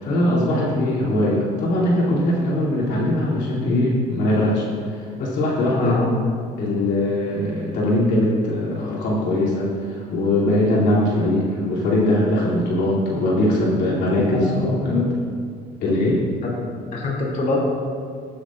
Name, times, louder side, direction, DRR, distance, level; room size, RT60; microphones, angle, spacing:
voice 1, 0.0-4.7 5.2-6.0 6.6-9.7 9.9-15.0 15.8-16.2, left 1 dB, 80° left, -6 dB, 3.0 m, -21 dB
voice 2, 5.8-6.1 11.0-11.2 14.5-15.0 16.4-16.5 16.9-17.6, left 3 dB, 50° left, -4 dB, 2.7 m, -24 dB
16.0 x 9.3 x 2.5 m, 2.1 s
cardioid pair, 110°, 17 cm